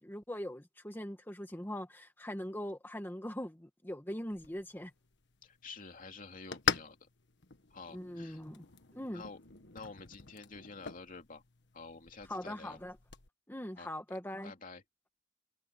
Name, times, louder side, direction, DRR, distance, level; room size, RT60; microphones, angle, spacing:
voice 1, 0.0-4.9 7.9-8.6 8.9-9.2 12.3-13.0 13.5-14.5, left 1 dB, 10° left, 1.5 m, -41 dB
sound 1, 4.3-13.3, left 7 dB, 65° left, 1.5 m, -42 dB
voice 2, 5.4-7.1 7.7-8.4 9.1-9.4 9.7-11.4 11.7-12.8 13.8-13.9 14.4-14.8, left 4 dB, 45° left, 2.8 m, -49 dB
head